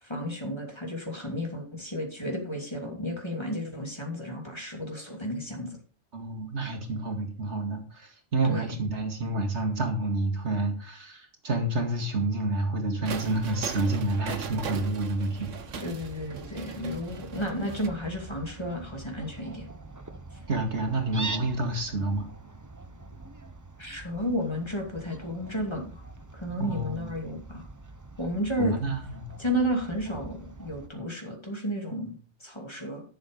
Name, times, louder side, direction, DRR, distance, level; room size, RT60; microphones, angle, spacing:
voice 1, 0.0-5.8 8.4-8.7 15.8-19.7 23.8-26.0 26.3-27.6 28.2-28.7 29.4-33.0, equal, 20° left, 2 dB, 2.6 m, -32 dB
voice 2, 6.1-15.5 20.5-22.3 26.6-27.2 28.6-29.4, right 2 dB, 70° right, 4 dB, 2.3 m, -29 dB
Fowl, 13.0-30.9, right 3 dB, 20° right, 0.7 m, -44 dB
sound 1, 13.0-17.9, right 5 dB, 85° right, 1.4 m, -39 dB
11.5 x 6.6 x 5.2 m, 0.39 s
omnidirectional pair, 1.2 m